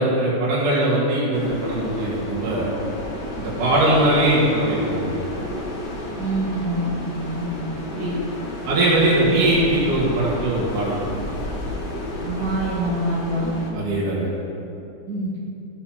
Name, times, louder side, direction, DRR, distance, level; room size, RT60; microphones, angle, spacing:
voice 1, 0.0-2.7 3.4-5.2 8.7-11.0 13.7-14.3, right 1 dB, 85° right, -8 dB, 3.6 m, -20 dB
sound 1, 1.3-13.7, left 1 dB, 40° left, 1.9 m, -31 dB
voice 2, 6.2-7.5 7.9-8.2 12.2-13.5 15.1-15.3, right 1 dB, 30° right, -8 dB, 2.6 m, -25 dB
14.5 x 8.8 x 6.3 m, 2.7 s
omnidirectional pair, 3.5 m